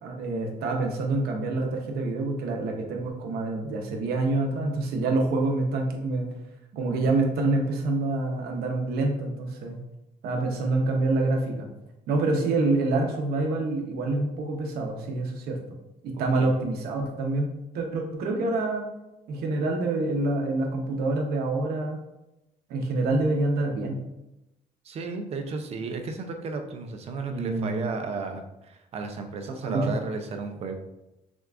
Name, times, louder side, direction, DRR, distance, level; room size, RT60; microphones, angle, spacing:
voice 1, 0.0-6.3 6.8-9.8 10.2-11.7 12.1-15.6 16.2-17.5 17.7-18.9 19.3-22.0 22.7-24.0 27.3-27.9 29.6-29.9, right 2 dB, 85° right, 2 dB, 0.8 m, -26 dB
voice 2, 16.1-16.6 24.8-30.7, right 4 dB, 40° right, 6 dB, 0.5 m, -34 dB
5.9 x 2.3 x 2.4 m, 0.92 s
cardioid pair, 170°, 16 cm